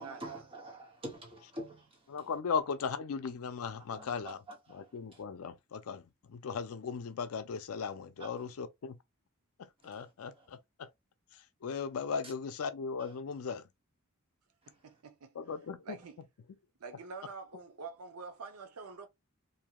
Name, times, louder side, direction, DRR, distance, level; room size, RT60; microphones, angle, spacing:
voice 1, 0.0-2.3 3.9-5.2 8.2-8.5 9.8-10.5 12.2-12.3 13.0-13.2 14.6-15.0, right 1 dB, 25° right, 1.1 m, -48 dB
voice 2, 2.1-4.4 4.7-6.0 6.3-9.0 9.6-10.9 11.6-13.6 15.4-16.0, left 6 dB, 70° left, 0.4 m, -37 dB
voice 3, 14.7-15.4 15.8-16.2 16.8-19.1, right 4 dB, 90° right, 0.6 m, -46 dB
2.7 x 2.3 x 2.8 m
head